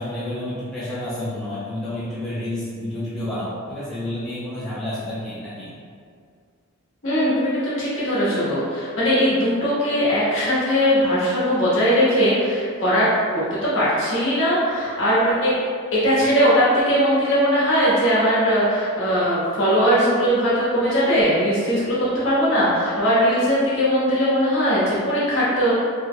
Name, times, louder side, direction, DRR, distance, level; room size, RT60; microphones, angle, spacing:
voice 1, 0.0-5.7, left 1 dB, ahead, -11 dB, 0.5 m, -30 dB
voice 2, 7.0-13.1 13.3-15.5 15.9-25.7, equal, 60° left, -8 dB, 1.0 m, -20 dB
3.1 x 2.1 x 3.6 m, 2.2 s
head